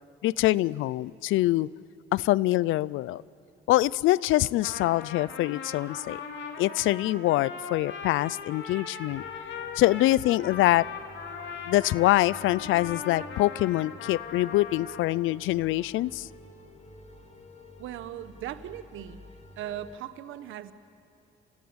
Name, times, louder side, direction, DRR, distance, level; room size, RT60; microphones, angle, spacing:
voice 1, 0.2-1.7 2.1-3.2 3.7-6.2 6.6-9.2 9.8-10.9 11.7-16.3, left 16 dB, 85° left, 22 dB, 0.4 m, -24 dB
Trumpet, 4.4-15.3, left 6 dB, 65° left, 2.7 m, -39 dB
sound 1, 9.1-20.0, left 1 dB, 35° left, 2.1 m, -50 dB
voice 2, 17.8-19.2 19.6-20.7, right 11 dB, 85° right, 13 dB, 1.0 m, -38 dB
29.5 x 15.5 x 8.7 m, 2.8 s
cardioid pair, 90°, 20 cm